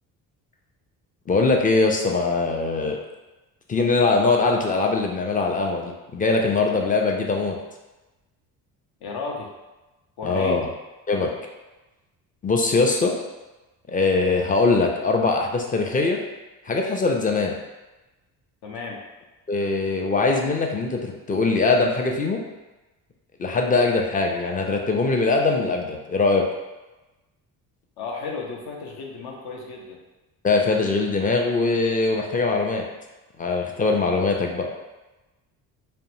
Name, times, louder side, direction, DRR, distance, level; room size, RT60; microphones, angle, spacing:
voice 1, 1.3-3.0 3.7-7.6 10.2-10.7 11.1-11.3 12.4-13.1 13.9-16.2 16.7-17.6 19.5-22.4 23.4-26.4 30.4-32.8 33.4-34.7, left 3 dB, 20° left, 1 dB, 0.4 m, -22 dB
voice 2, 9.0-9.5 10.2-10.6 18.6-19.0 28.0-30.0, left 4 dB, 55° left, 0 dB, 0.7 m, -33 dB
2.5 x 2.0 x 3.0 m, 1.1 s
hypercardioid pair, 55°, 45 cm